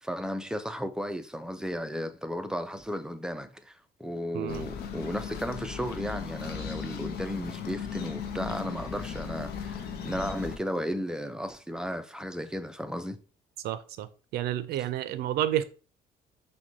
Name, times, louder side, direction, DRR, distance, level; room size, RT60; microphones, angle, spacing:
voice 1, 0.0-13.2, equal, 5° right, 0.4 m, -34 dB
voice 2, 4.3-4.7 13.6-14.1 14.3-15.6, right 12 dB, 70° right, 0.5 m, -30 dB
sound 1, 4.5-10.6, left 7 dB, 70° left, 0.6 m, -37 dB
5.9 x 2.2 x 2.6 m
cardioid pair, 110°, 17 cm